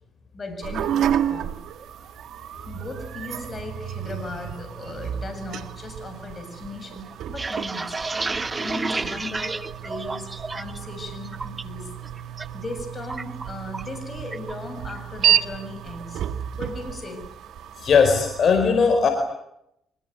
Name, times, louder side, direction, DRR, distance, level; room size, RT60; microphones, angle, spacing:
voice 1, 0.3-1.6 2.6-8.0 8.6-11.9 12.5-16.2 16.6-17.3, left 2 dB, 30° left, 7.3 m, -37 dB
sound 1, 0.6-18.5, right 10 dB, 75° right, 1.6 m, -31 dB
sound 2, 7.1-10.8 11.1-11.6 12.0-12.5 12.7-14.0 14.3-14.5 14.9-15.4, right 3 dB, 25° right, 1.3 m, -31 dB
voice 2, 17.8-19.1, left 5 dB, 55° left, 4.6 m, -18 dB
25.0 x 21.0 x 9.4 m
cardioid pair, 90°, 0 cm